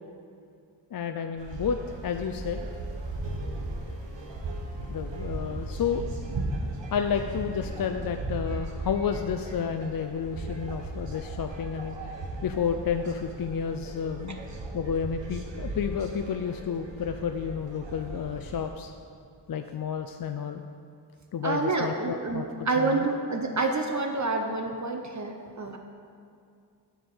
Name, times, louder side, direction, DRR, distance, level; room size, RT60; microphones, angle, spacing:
voice 1, 0.9-2.6 4.9-6.1 6.9-12.0 12.4-14.4 14.7-18.9 19.5-20.6 21.3-22.4 22.8-23.1, left 7 dB, 55° left, 6 dB, 0.5 m, -31 dB
sound 1, 1.4-18.7, right 2 dB, 80° right, 1.1 m, -37 dB
voice 2, 21.4-25.8, right 3 dB, 40° right, 4 dB, 0.8 m, -28 dB
7.3 x 4.8 x 7.0 m, 2.4 s
cardioid pair, 50°, 43 cm